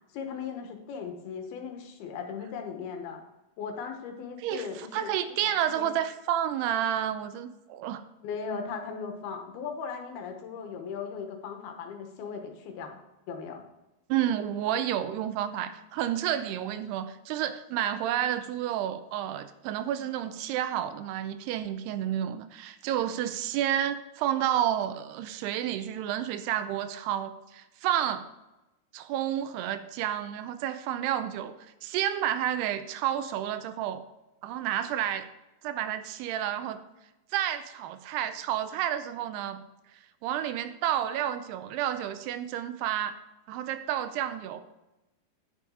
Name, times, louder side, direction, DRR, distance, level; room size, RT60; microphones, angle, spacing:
voice 1, 0.1-3.2 3.6-5.4 5.8-5.9 8.2-13.0 13.3-13.6, left 6 dB, 70° left, 4 dB, 2.9 m, -38 dB
voice 2, 4.4-8.0 14.1-28.3 28.9-31.6 31.8-34.0 34.4-35.3 35.6-36.8 37.3-39.6 40.2-43.2 43.5-44.6, right 11 dB, 85° right, 11 dB, 2.6 m, -30 dB
9.8 x 7.0 x 4.8 m, 0.98 s
omnidirectional pair, 4.8 m